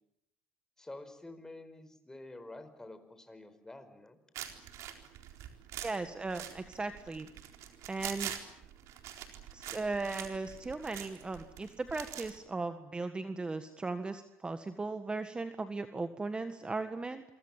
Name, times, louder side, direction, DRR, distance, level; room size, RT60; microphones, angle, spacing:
voice 1, 0.8-4.2, left 2 dB, 10° left, 10 dB, 4.9 m, -49 dB
sound 1, 4.3-12.4, right 11 dB, 65° right, 4.1 m, -44 dB
voice 2, 5.8-7.3 7.9-8.3 9.5-17.2, right 3 dB, 20° right, 9 dB, 1.7 m, -37 dB
27.5 x 24.5 x 7.4 m, 0.78 s
supercardioid pair, 95°, 5 cm